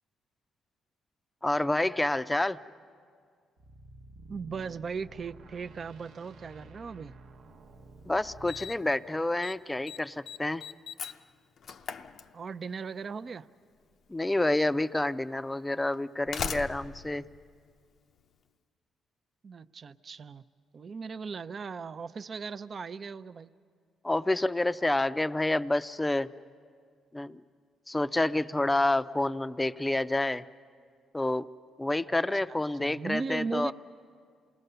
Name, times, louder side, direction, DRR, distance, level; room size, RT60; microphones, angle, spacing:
voice 1, 1.4-2.6 8.1-10.6 14.1-17.3 24.0-26.3 27.1-27.4 27.9-30.4 31.1-31.5 31.8-33.7, left 2 dB, 15° left, 13 dB, 0.5 m, -28 dB
sound 1, 3.6-8.8, right 2 dB, 80° right, 0.9 m, -51 dB
voice 2, 4.3-7.1 12.3-13.5 19.4-20.4 20.7-23.5 32.1-32.2 32.5-33.7, right 5 dB, 45° right, 12 dB, 0.5 m, -38 dB
Slam, 7.7-7.8 8.5-8.9 9.2-9.6 9.9-12.8 13.9-14.0 14.9-15.0 15.9-18.3, left 6 dB, 60° left, 0.6 m, -39 dB
28.0 x 19.5 x 6.8 m, 2.1 s
cardioid pair, 90°, 0 cm